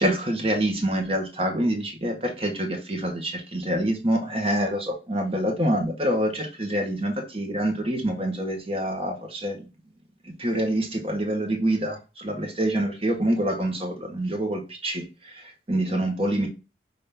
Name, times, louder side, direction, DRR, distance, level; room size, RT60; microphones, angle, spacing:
voice 1, 0.0-9.6 10.2-16.5, right 1 dB, 30° right, 2 dB, 1.0 m, -26 dB
5.6 x 2.7 x 3.4 m, 0.29 s
head